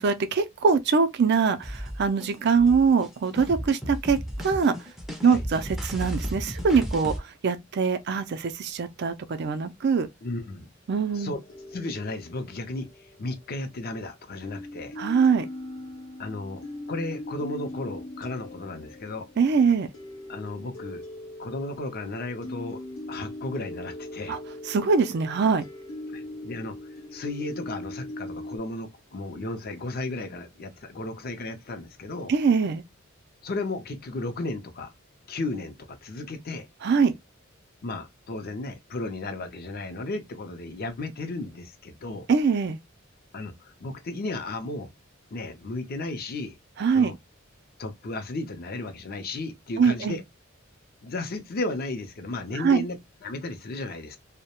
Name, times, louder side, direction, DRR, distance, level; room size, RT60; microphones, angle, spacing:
voice 1, 0.0-4.2 4.4-4.7 5.2-7.1 7.4-10.1 10.9-11.4 15.0-15.5 19.4-19.9 24.3-24.4 24.7-25.6 32.3-32.8 36.8-37.1 42.3-42.8 46.8-47.1 49.8-50.2 52.6-52.8, right 5 dB, 55° right, 0.4 m, -23 dB
sound 1, 1.6-7.2, equal, ahead, 0.5 m, -34 dB
voice 2, 10.2-10.7 11.1-11.4 11.7-15.0 16.2-19.3 20.3-21.0 21.4-24.4 26.1-26.7 27.1-32.3 33.4-34.9 35.3-36.7 37.8-42.3 43.3-44.9 45.3-46.6 46.9-47.1 47.8-50.2 51.0-54.2, left 2 dB, 50° left, 0.5 m, -34 dB
sound 2, 11.1-14.0 14.4-28.6, left 1 dB, 90° left, 0.9 m, -41 dB
2.3 x 2.1 x 2.9 m
head